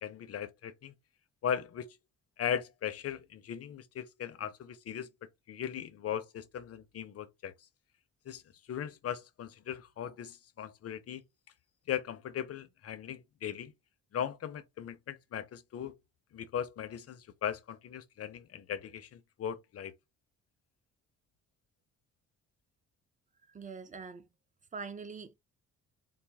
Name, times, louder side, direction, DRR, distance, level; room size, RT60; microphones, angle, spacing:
voice 1, 0.0-0.9 1.4-1.9 2.4-5.1 5.5-7.5 8.3-8.4 8.7-11.2 11.9-13.7 14.1-15.9 16.3-19.9, left 9 dB, 50° left, 0.7 m, -38 dB
voice 2, 23.5-24.3 24.7-25.3, right 5 dB, 25° right, 0.7 m, -43 dB
4.1 x 2.1 x 3.4 m
cardioid pair, 90°, 30 cm